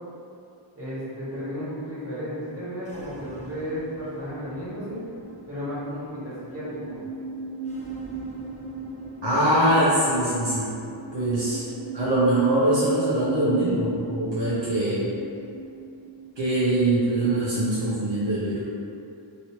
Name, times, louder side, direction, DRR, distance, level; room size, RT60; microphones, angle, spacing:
voice 1, 0.7-5.0 5.5-7.0, equal, 30° right, -12 dB, 1.5 m, -33 dB
sound 1, 2.8-18.3, right 3 dB, 15° left, 0.5 m, -39 dB
voice 2, 9.2-10.7 11.1-11.6 11.9-15.1 16.4-18.6, right 1 dB, 65° right, -10 dB, 0.8 m, -23 dB
3.0 x 3.0 x 2.8 m, 2.5 s
wide cardioid pair, 70°, 47 cm